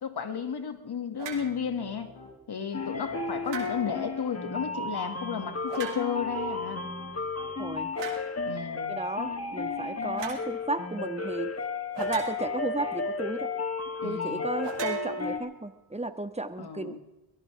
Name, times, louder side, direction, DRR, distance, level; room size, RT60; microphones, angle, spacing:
voice 1, 0.0-2.1 2.5-6.8 8.5-9.0 14.0-14.5 16.6-17.0, left 7 dB, 65° left, 7 dB, 2.5 m, -33 dB
sound 1, 1.2-1.5 3.4-4.0 5.7-6.3 8.0-8.3 10.2-10.5 11.9-12.7 14.6-15.7, right 7 dB, 90° right, 3.0 m, -39 dB
Piano, 1.3-2.3 2.8-3.9 4.5-7.8, left 2 dB, 85° left, 8.0 m, -50 dB
sound 2, 2.7-15.4, left 4 dB, 35° left, 3.1 m, -33 dB
voice 2, 7.6-7.9 8.9-11.5 12.0-13.5 14.0-17.0, right 2 dB, 15° right, 9 dB, 1.8 m, -34 dB
22.5 x 17.0 x 3.6 m, 1.0 s
cardioid pair, 55°, 42 cm